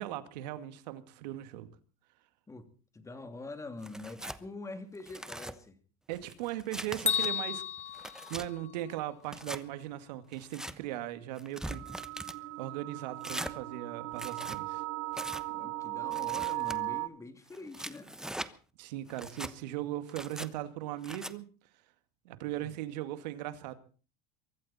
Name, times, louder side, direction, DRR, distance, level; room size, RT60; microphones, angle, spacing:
voice 1, 0.0-1.7 6.1-7.6 8.0-11.8 12.6-14.8 18.8-21.5 22.2-23.7, right 14 dB, 90° right, 2.2 m, -38 dB
voice 2, 2.9-5.8 15.5-18.1 22.5-22.7, left 3 dB, 15° left, 2.9 m, -45 dB
Tearing, 3.8-4.4 4.9-5.5 6.1-7.3 7.8-8.5 9.2-9.6 10.3-10.7 11.4-12.4 13.2-13.5 14.1-14.6 15.1-15.4 16.1-16.8 17.5-18.5 19.1-19.5 20.1-20.5 21.0-21.3, right 1 dB, 5° right, 1.0 m, -41 dB
Bell, 7.1-9.1, left 8 dB, 30° left, 1.3 m, -33 dB
sound 1, 11.6-17.1, right 21 dB, 65° right, 1.1 m, -37 dB
23.5 x 13.5 x 4.3 m
supercardioid pair, 130°, 21 cm